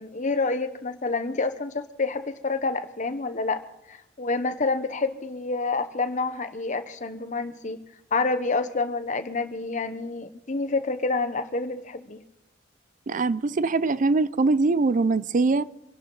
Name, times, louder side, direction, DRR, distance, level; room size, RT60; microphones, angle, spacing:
voice 1, 0.0-3.6 3.9-7.8 8.1-12.2, left 3 dB, 40° left, 1.0 m, -28 dB
voice 2, 13.1-15.6, right 3 dB, 45° right, 0.5 m, -22 dB
26.0 x 11.5 x 4.0 m
head